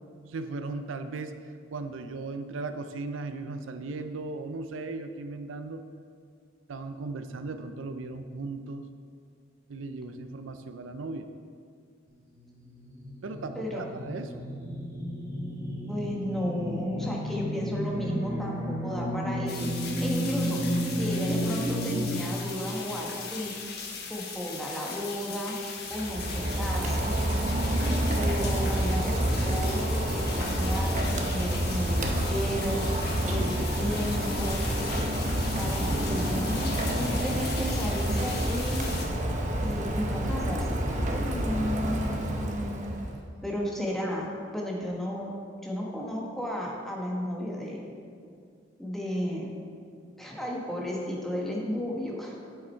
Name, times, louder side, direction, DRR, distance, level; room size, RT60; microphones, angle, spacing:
voice 1, 0.3-1.4 1.7-5.8 6.7-8.9 9.7-11.3 13.2-14.5 43.1-43.2, right 3 dB, 80° right, 9 dB, 0.5 m, -37 dB
sound 1, 12.3-22.1, equal, 15° right, 1.7 m, -32 dB
voice 2, 13.5-13.9 15.9-20.6 20.9-23.5 24.1-25.6 25.9-27.1 28.1-29.1 29.4-32.0 32.2-34.6 35.6-38.9 39.6-40.7 41.1-42.9 43.4-45.3 45.6-47.8 48.8-49.6 50.2-52.4, equal, ahead, -3 dB, 1.3 m, -33 dB
sound 2, 19.5-39.1, left 5 dB, 55° left, 1.2 m, -39 dB
Rain, 25.9-43.2, right 1 dB, 40° right, 0.8 m, -28 dB
8.6 x 7.3 x 4.5 m, 2.3 s
head